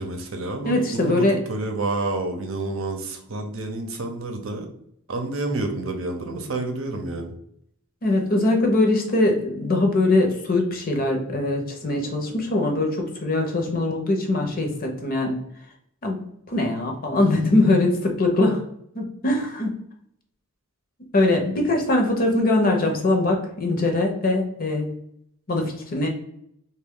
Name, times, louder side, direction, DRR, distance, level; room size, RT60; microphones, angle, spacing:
voice 1, 0.0-4.7 5.1-7.3, right 2 dB, 65° right, 4 dB, 0.7 m, -29 dB
voice 2, 0.6-1.4 8.0-15.4 16.0-18.6 18.9-19.7 21.1-24.9 25.5-26.1, left 2 dB, 40° left, 3 dB, 0.7 m, -22 dB
3.3 x 2.3 x 3.6 m, 0.70 s
head